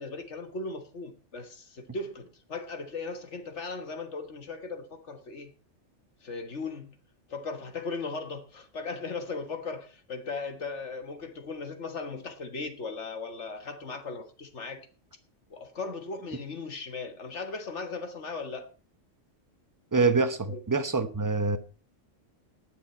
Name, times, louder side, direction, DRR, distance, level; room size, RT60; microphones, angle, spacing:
voice 1, 0.0-5.5 6.2-7.0 7.3-14.9 15.5-18.7 20.5-20.6, left 4 dB, 65° left, 1.8 m, -37 dB
voice 2, 19.9-21.6, right 4 dB, 20° right, 0.8 m, -25 dB
19.5 x 6.7 x 4.3 m
omnidirectional pair, 1.3 m